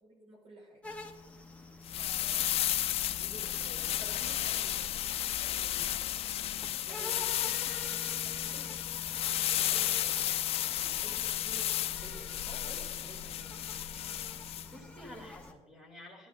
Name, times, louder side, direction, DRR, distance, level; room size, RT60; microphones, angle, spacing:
voice 1, 0.0-0.8 2.0-2.5 3.1-4.9 6.5-8.8 9.6-10.3 10.9-13.5, right 1 dB, 65° right, -1 dB, 5.1 m, -52 dB
sound 1, 0.8-15.5, left 2 dB, 10° left, 1.3 m, -48 dB
sound 2, 1.8-14.7, left 12 dB, 60° left, 0.4 m, -33 dB
voice 2, 5.6-5.9 10.8-11.1 14.6-16.3, left 1 dB, 5° right, 0 dB, 3.3 m, -51 dB
15.0 x 11.5 x 3.7 m, 1.1 s
cardioid pair, 135°, 11 cm